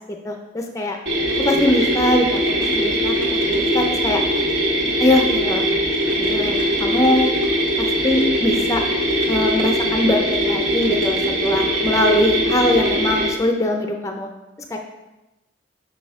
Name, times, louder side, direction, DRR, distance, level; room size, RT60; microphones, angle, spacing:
voice 1, 0.2-1.0 1.4-2.4 2.7-3.1 3.5-4.2 5.0-5.7 6.2-7.3 7.8-8.8 9.3-14.3 14.7-14.8, left 1 dB, 15° left, 3 dB, 0.5 m, -21 dB
sound 1, 1.1-13.3, equal, 85° right, 1.5 m, -21 dB
6.3 x 5.0 x 3.5 m, 1.0 s
head